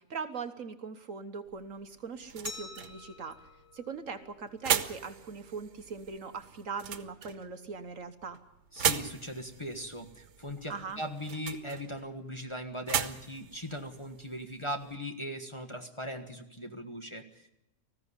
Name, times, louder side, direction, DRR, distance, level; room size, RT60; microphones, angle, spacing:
voice 1, 0.0-3.4 3.7-8.4 10.7-11.0, right 5 dB, 55° right, 8 dB, 1.4 m, -40 dB
sound 1, 1.5-15.0, right 8 dB, 85° right, 1.6 m, -38 dB
Glass, 2.5-5.2, left 5 dB, 90° left, 2.2 m, -48 dB
voice 2, 8.7-17.5, equal, 20° left, 3 dB, 1.4 m, -39 dB
19.5 x 15.0 x 9.8 m, 0.88 s
omnidirectional pair, 1.7 m